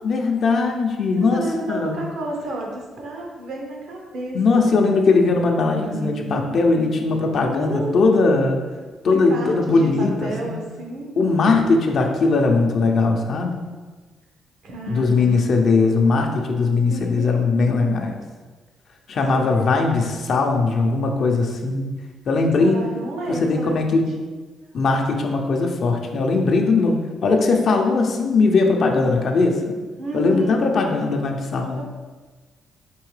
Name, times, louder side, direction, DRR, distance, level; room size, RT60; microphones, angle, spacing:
voice 1, 0.0-2.0 4.3-8.6 9.0-10.5 11.2-13.6 14.8-18.1 19.1-21.9 22.3-22.8 23.3-24.1 24.7-29.6 30.1-31.8, left 3 dB, 55° left, 3 dB, 0.5 m, -19 dB
voice 2, 1.1-4.9 5.7-6.6 7.6-8.3 9.0-11.8 14.6-15.4 16.9-17.9 18.1-18.3 19.3-19.7 22.5-24.0 24.6-24.7 30.0-30.8 31.7-31.8, right 2 dB, 75° right, 0 dB, 0.9 m, -31 dB
4.5 x 2.8 x 3.2 m, 1.3 s
cardioid pair, 90°, 0 cm